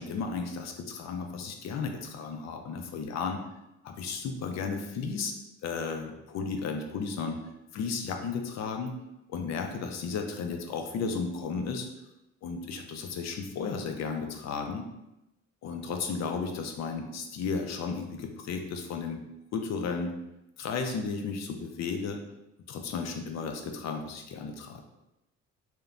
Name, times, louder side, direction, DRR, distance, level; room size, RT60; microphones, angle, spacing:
voice 1, 0.0-3.4 3.8-5.3 5.6-7.4 7.7-8.9 9.3-11.9 12.4-14.8 15.6-19.2 19.5-20.1 20.6-22.2 22.7-24.8, left 5 dB, 60° left, 4 dB, 0.5 m, -34 dB
3.0 x 2.1 x 2.5 m, 0.92 s
cardioid pair, 90°, 30 cm